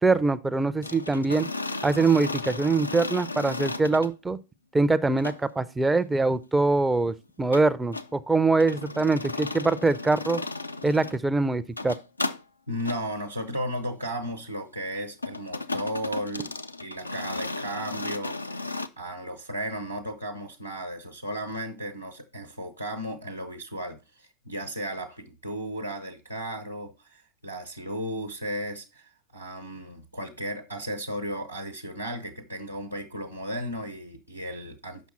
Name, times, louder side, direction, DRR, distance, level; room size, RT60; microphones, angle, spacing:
voice 1, 0.0-1.5 1.8-4.4 4.7-10.4 10.8-11.9, right 3 dB, 10° right, 0.5 m, -23 dB
sound 1, 0.8-4.1 5.2-5.4 7.5-8.1 8.6-11.2 11.6-12.4 12.8-13.0 15.2-18.9, left 3 dB, 85° left, 0.4 m, -34 dB
voice 2, 12.7-16.5 16.8-35.1, equal, 85° right, 0.9 m, -35 dB
7.3 x 5.7 x 4.3 m
figure-of-eight pair, 90°, 0 cm